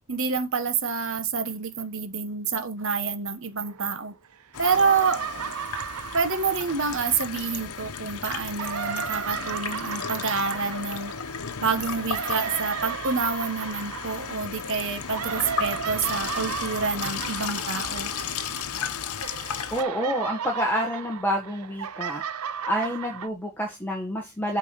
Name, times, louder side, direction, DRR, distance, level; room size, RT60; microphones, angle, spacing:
voice 1, 0.0-4.1 4.6-5.2 6.1-11.1 11.6-18.1, right 5 dB, 60° right, 1.3 m, -27 dB
sound 1, 3.6-4.3 4.5-7.8 8.3-18.9 19.2-23.3, right 8 dB, 85° right, 0.6 m, -35 dB
Water tap faucet / Sink (filling or washing), 4.5-19.8, left 7 dB, 85° left, 0.9 m, -34 dB
voice 2, 19.7-22.2 22.6-24.6, equal, 10° left, 1.5 m, -28 dB
8.7 x 4.6 x 6.0 m
head